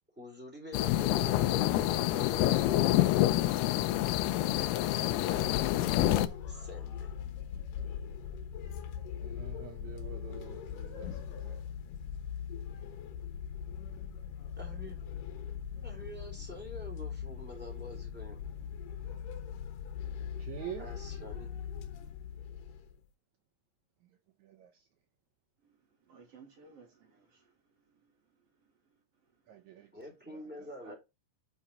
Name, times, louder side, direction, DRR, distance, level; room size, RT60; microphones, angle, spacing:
voice 1, 0.2-3.1 4.5-5.7 6.4-7.1 14.6-15.0 15.8-18.4 20.8-21.5 29.9-30.9, left 1 dB, 5° right, 2.7 m, -46 dB
sound 1, 0.7-6.3, left 14 dB, 85° left, 2.7 m, -27 dB
sound 2, 4.8-23.0, left 8 dB, 65° left, 2.6 m, -41 dB
voice 2, 9.2-11.1 20.5-20.8 29.5-29.8, right 10 dB, 85° right, 1.6 m, -44 dB
voice 3, 26.1-27.5 27.9-28.1 30.8-30.9, right 4 dB, 45° right, 2.6 m, -56 dB
8.4 x 5.5 x 4.1 m
omnidirectional pair, 4.5 m